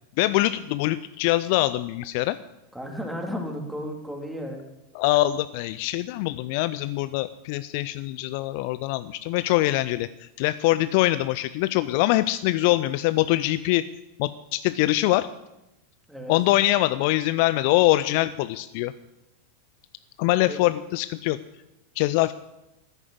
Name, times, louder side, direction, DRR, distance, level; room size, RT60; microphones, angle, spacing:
voice 1, 0.2-2.4 4.9-13.8 14.2-15.3 16.3-18.9 20.2-21.4 22.0-22.3, left 17 dB, 45° left, 15 dB, 0.5 m, -23 dB
voice 2, 2.7-4.6 16.1-16.4 20.5-20.6, equal, ahead, 1 dB, 3.2 m, -33 dB
13.5 x 11.0 x 7.8 m, 0.93 s
figure-of-eight pair, 90°, 0 cm